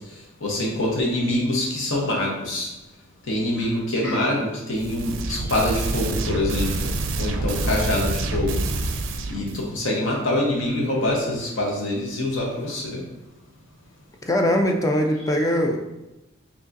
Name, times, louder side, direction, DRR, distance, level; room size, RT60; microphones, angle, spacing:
voice 1, 0.4-2.7 3.3-8.6 9.3-13.0, left 1 dB, 75° left, -2 dB, 1.0 m, -25 dB
sound 1, 4.7-9.6, right 2 dB, 70° right, 0.4 m, -27 dB
voice 2, 14.2-15.8, left 1 dB, 15° left, 2 dB, 0.3 m, -21 dB
5.0 x 2.9 x 2.6 m, 0.97 s
head